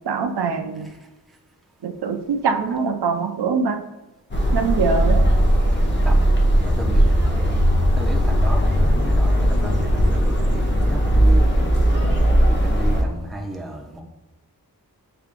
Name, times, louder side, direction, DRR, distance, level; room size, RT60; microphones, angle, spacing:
voice 1, 0.1-0.9 1.8-3.8 4.5-5.3, right 5 dB, 90° right, 6 dB, 0.5 m, -23 dB
sound 1, 4.3-13.0, equal, 30° left, 0.8 m, -18 dB
voice 2, 6.6-7.1 7.4-7.6 7.9-11.8 12.5-14.0, right 1 dB, ahead, -1 dB, 0.6 m, -33 dB
5.8 x 3.3 x 2.4 m, 1.0 s
wide cardioid pair, 75°, 38 cm